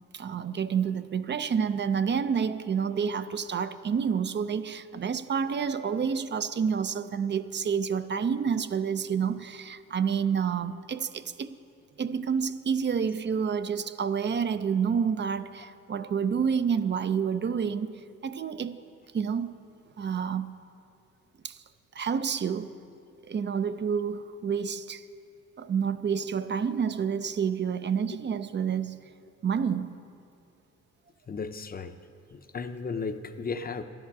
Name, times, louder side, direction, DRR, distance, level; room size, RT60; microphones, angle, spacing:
voice 1, 0.1-11.6 12.0-18.9 19.1-19.5 20.0-20.6 21.4-21.6 21.9-22.8 23.2-25.1 25.6-29.1 29.4-30.0, right 7 dB, 35° right, 12 dB, 0.6 m, -29 dB
voice 2, 31.3-31.9 32.3-33.8, left 4 dB, 30° left, 9 dB, 0.7 m, -35 dB
12.5 x 11.0 x 6.0 m, 2.5 s
cardioid pair, 90°, 30 cm